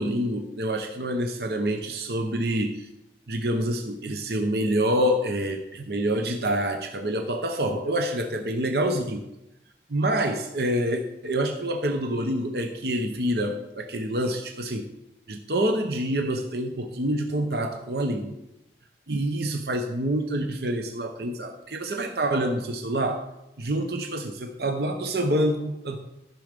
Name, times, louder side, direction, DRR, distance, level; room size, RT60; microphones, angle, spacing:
voice 1, 0.0-2.9 3.3-9.3 9.9-14.9 15.3-18.3 19.1-23.3 23.6-26.0, right 1 dB, 60° right, 4 dB, 0.9 m, -27 dB
14.0 x 6.2 x 5.2 m, 0.90 s
head